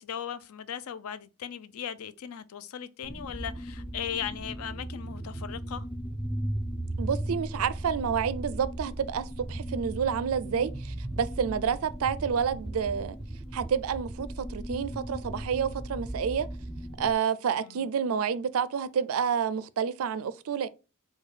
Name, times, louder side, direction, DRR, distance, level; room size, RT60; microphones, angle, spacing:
voice 1, 0.0-5.9 17.6-17.9, left 8 dB, 70° left, 0.4 m, -38 dB
sound 1, 3.0-17.1, right 1 dB, ahead, 0.5 m, -37 dB
voice 2, 7.0-13.2 13.5-16.5 17.0-20.7, right 7 dB, 70° right, 0.4 m, -29 dB
4.6 x 2.2 x 4.8 m
head